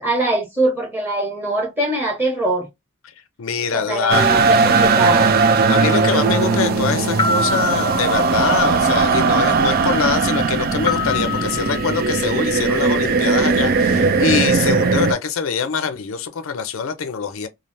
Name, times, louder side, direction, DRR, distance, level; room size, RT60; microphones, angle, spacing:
voice 1, 0.0-2.7 3.7-5.3, right 2 dB, 10° right, 1.3 m, -22 dB
voice 2, 3.4-4.3 5.7-17.5, left 6 dB, 80° left, 0.5 m, -23 dB
sound 1, 4.1-15.1, right 4 dB, 45° right, 0.4 m, -18 dB
sound 2, 6.2-12.8, left 4 dB, 25° left, 0.5 m, -27 dB
3.2 x 2.4 x 2.6 m
head